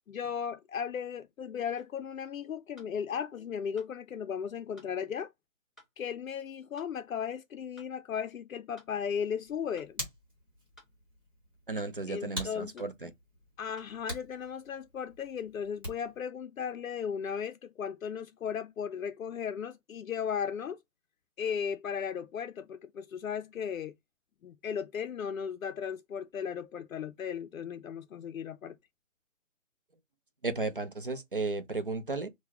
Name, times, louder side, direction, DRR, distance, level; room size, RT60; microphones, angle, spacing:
voice 1, 0.1-5.3 6.0-10.0 12.1-12.9 13.6-20.8 21.4-23.9 24.4-28.8, left 7 dB, 85° left, 0.5 m, -36 dB
sound 1, 1.8-1.9 2.8-2.9 3.8-3.9 4.8-4.9 5.8-5.9 6.8-6.9 7.8-7.9 8.8-8.9 9.8-9.9 10.8-10.9 11.8-11.9 12.8-12.9 13.8-13.9, equal, ahead, 1.1 m, -58 dB
Hands, 9.4-16.2, equal, 15° right, 1.2 m, -45 dB
voice 2, 11.7-13.1 30.4-32.3, right 3 dB, 45° right, 0.5 m, -34 dB
3.8 x 2.2 x 2.8 m
figure-of-eight pair, 175°, 40 cm